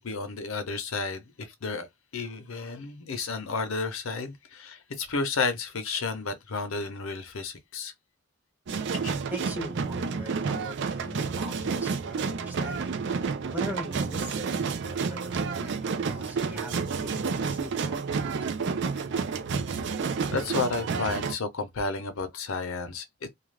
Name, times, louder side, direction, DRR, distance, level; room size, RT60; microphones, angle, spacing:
voice 1, 0.0-1.9 2.1-7.9 9.0-9.2 20.3-23.3, left 4 dB, 65° left, 0.7 m, -32 dB
sound 1, 8.7-21.3, right 5 dB, 55° right, 0.5 m, -30 dB
voice 2, 9.3-12.9 13.2-14.5 14.9-18.3, equal, 10° right, 0.8 m, -41 dB
2.4 x 2.3 x 3.2 m
head